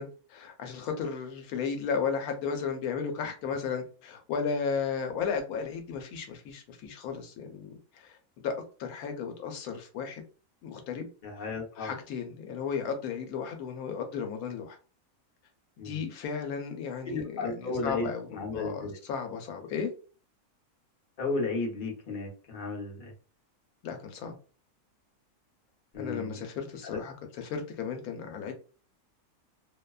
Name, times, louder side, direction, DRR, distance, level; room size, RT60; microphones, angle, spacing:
voice 1, 0.0-10.2 10.6-11.1 11.8-14.8 15.8-19.9 23.8-24.3 26.0-28.5, left 6 dB, 80° left, 5 dB, 1.0 m, -34 dB
voice 2, 11.2-11.9 15.8-16.0 17.1-19.0 21.2-23.1 25.9-26.4 26.9-27.0, left 3 dB, 40° left, -1 dB, 0.8 m, -34 dB
2.7 x 2.1 x 2.3 m, 0.36 s
omnidirectional pair, 1.5 m